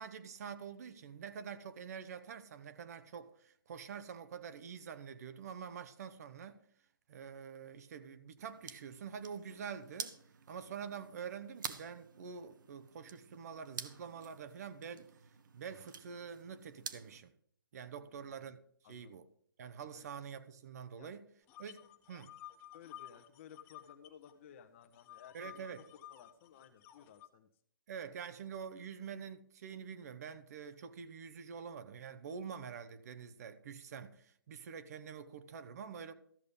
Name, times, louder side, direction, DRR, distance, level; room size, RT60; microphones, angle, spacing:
voice 1, 0.0-6.6 7.1-10.2 10.5-15.1 15.5-17.3 17.7-18.6 18.9-19.3 19.6-21.2 21.6-21.8 22.1-22.3 25.3-25.8 27.9-36.1, right 7 dB, 45° right, 0.8 m, -46 dB
sound 1, 8.4-17.2, right 6 dB, 60° right, 1.1 m, -50 dB
voice 2, 17.9-18.4 18.8-19.1 19.9-20.1 21.0-21.1 22.7-25.7 25.9-27.5, left 8 dB, 35° left, 1.1 m, -57 dB
sound 2, 21.5-24.3 24.6-27.3, left 13 dB, 20° left, 0.7 m, -54 dB
13.5 x 6.6 x 5.3 m
hypercardioid pair, 150°, 12 cm